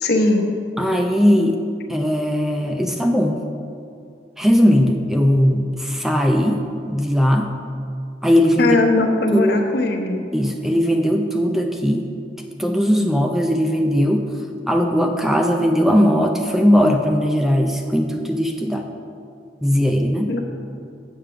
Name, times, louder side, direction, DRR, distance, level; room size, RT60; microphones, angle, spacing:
voice 1, 0.0-0.5 8.6-10.2 20.3-20.4, left 2 dB, 60° left, 3 dB, 1.0 m, -19 dB
voice 2, 0.8-1.6 1.9-3.4 4.4-7.5 8.2-8.8 9.3-9.9 10.3-12.1 12.6-14.3 14.7-18.9 19.6-20.3, equal, ahead, 3 dB, 0.4 m, -18 dB
7.4 x 7.2 x 5.7 m, 2.4 s
head